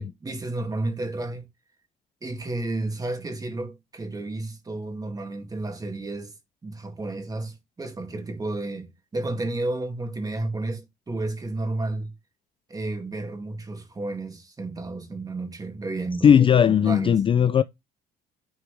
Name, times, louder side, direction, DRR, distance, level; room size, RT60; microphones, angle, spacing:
voice 1, 0.0-1.4 2.2-6.3 6.6-12.1 12.7-16.3 16.8-17.2, right 2 dB, 20° right, 2.2 m, -32 dB
voice 2, 16.2-17.6, left 8 dB, 30° left, 0.4 m, -17 dB
9.9 x 4.6 x 3.3 m
cardioid pair, 110°, 17 cm